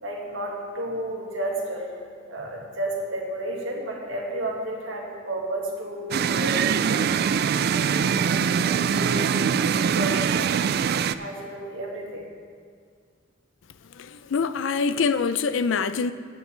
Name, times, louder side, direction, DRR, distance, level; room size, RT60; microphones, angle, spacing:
voice 1, 0.0-1.9 2.3-7.1 7.7-9.5 9.9-10.4 11.1-12.3, right 1 dB, 90° right, 1.9 m, -32 dB
sound 1, 6.1-11.1, right 7 dB, 55° right, 0.3 m, -23 dB
voice 2, 14.0-16.1, left 5 dB, 80° left, 0.4 m, -25 dB
15.0 x 9.1 x 3.3 m
head